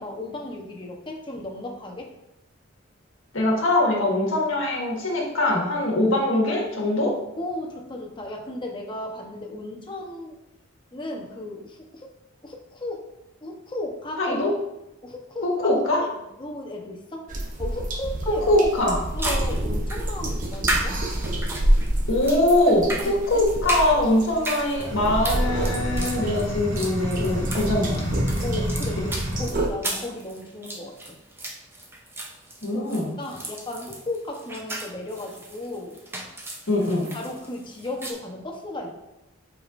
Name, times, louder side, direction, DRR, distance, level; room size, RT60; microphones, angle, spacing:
voice 1, 0.0-2.1 5.9-6.0 7.4-10.4 10.9-12.2 12.4-13.0 13.4-14.3 15.0-16.1 16.4-17.3 17.6-18.6 19.1-21.0 23.0-23.4 28.4-31.2 32.7-32.9 33.2-36.0 37.1-39.0, left 1 dB, 25° left, 0 dB, 1.0 m, -35 dB
voice 2, 3.3-7.1 14.2-14.5 15.4-16.0 18.4-19.0 22.1-28.0 29.0-29.1 32.6-33.1 36.7-37.1, left 1 dB, 75° left, -2 dB, 1.7 m, -22 dB
sound 1, 17.3-29.7, right 1 dB, 40° right, 0.9 m, -28 dB
sound 2, 18.5-18.6 19.2-38.1, right 1 dB, 10° right, 0.8 m, -35 dB
sound 3, 24.8-29.5, equal, 70° right, 1.7 m, -30 dB
8.3 x 4.9 x 2.6 m, 0.88 s
head